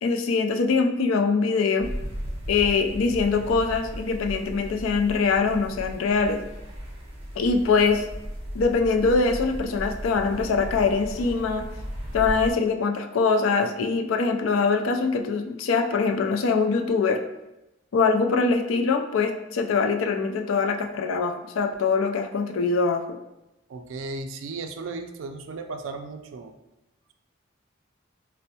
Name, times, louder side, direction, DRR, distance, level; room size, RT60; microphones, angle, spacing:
voice 1, 0.0-1.9 2.5-6.4 7.4-8.1 8.5-11.6 12.1-17.2 17.9-23.0, left 4 dB, 90° left, 5 dB, 0.4 m, -23 dB
sound 1, 1.8-12.5, equal, 30° right, 0.6 m, -36 dB
voice 2, 23.7-26.5, right 3 dB, 75° right, 7 dB, 0.3 m, -35 dB
4.3 x 2.0 x 2.7 m, 0.93 s
head